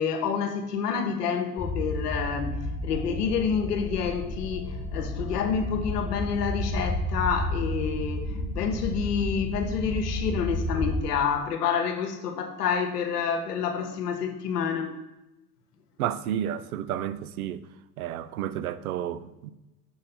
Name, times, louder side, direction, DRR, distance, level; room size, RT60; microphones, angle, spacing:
voice 1, 0.0-2.6 2.8-15.0, left 6 dB, 75° left, 1.1 m, -28 dB
sound 1, 1.6-11.0, left 1 dB, 15° left, 1.0 m, -31 dB
voice 2, 16.0-17.6 18.0-19.5, right 10 dB, 65° right, 0.6 m, -31 dB
6.2 x 5.4 x 4.2 m
hypercardioid pair, 95°, 48 cm